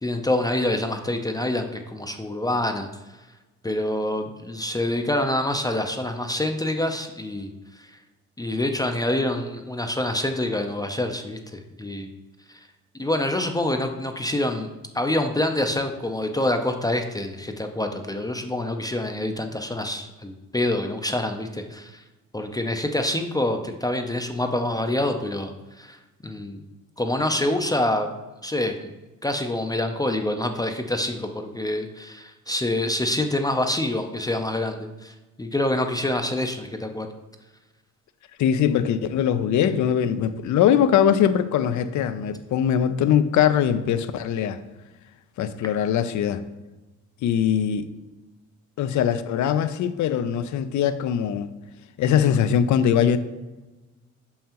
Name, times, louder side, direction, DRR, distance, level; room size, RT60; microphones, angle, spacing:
voice 1, 0.0-2.9 3.6-7.5 7.8-7.9 8.4-12.1 12.5-12.6 13.0-14.7 14.9-22.0 22.3-25.5 25.8-26.6 27.0-28.2 28.4-28.9 29.2-37.1, left 1 dB, 15° left, 0.5 m, -26 dB
voice 2, 38.4-44.6 45.4-46.4 47.2-47.9 48.8-51.5 52.0-53.2, left 9 dB, 70° left, 0.5 m, -21 dB
6.3 x 5.6 x 2.9 m
cardioid pair, 90°, 30 cm